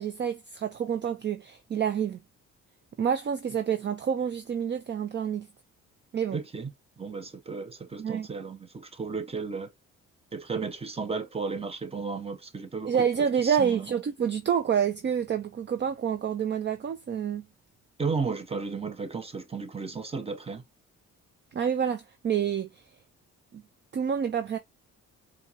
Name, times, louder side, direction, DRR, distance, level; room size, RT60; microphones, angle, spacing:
voice 1, 0.0-2.2 3.0-5.5 6.1-6.4 8.0-8.3 12.8-17.4 21.5-22.7 23.5-23.6 23.9-24.6, right 8 dB, 35° right, 0.5 m, -28 dB
voice 2, 6.3-6.7 7.0-9.7 10.3-13.9 18.0-20.6, right 4 dB, 20° right, 0.9 m, -34 dB
4.5 x 2.4 x 2.7 m
cardioid pair, 90°, 30 cm